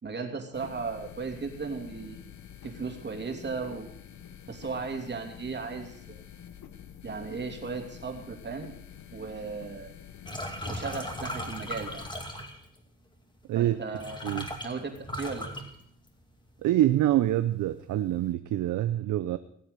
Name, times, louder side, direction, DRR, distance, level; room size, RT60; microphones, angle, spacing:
voice 1, 0.0-2.3 2.6-3.9 4.5-6.2 7.0-8.7 9.1-9.9 10.6-12.0 13.5-14.2 14.6-15.5, right 4 dB, 35° right, 2.8 m, -36 dB
sound 1, 0.5-12.1, left 9 dB, 70° left, 1.3 m, -48 dB
sound 2, 10.3-12.8 13.6-13.7 13.9-16.4 16.7-17.2 17.5-18.2, equal, 15° left, 2.4 m, -37 dB
voice 2, 13.5-14.0 14.2-14.5 16.6-19.4, right 13 dB, 75° right, 0.7 m, -26 dB
19.0 x 7.9 x 6.9 m
cardioid pair, 90°, 30 cm